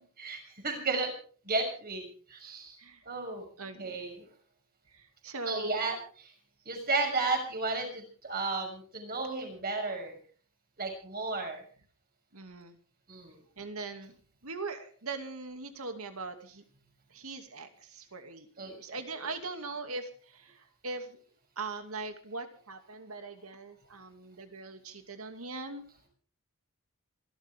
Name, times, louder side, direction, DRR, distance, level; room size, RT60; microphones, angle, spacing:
voice 1, 0.2-1.1 1.5-2.7 3.1-3.4 3.8-4.2 5.5-6.0 6.7-10.2 10.8-11.6 13.1-13.3 18.6-19.0, right 3 dB, 45° right, 3 dB, 6.2 m, -33 dB
voice 2, 3.6-4.0 4.9-5.8 12.3-12.8 13.6-14.1 14.4-16.6 17.1-21.2 21.6-25.8, right 3 dB, 85° right, 7 dB, 2.5 m, -41 dB
27.0 x 13.0 x 3.7 m, 0.42 s
head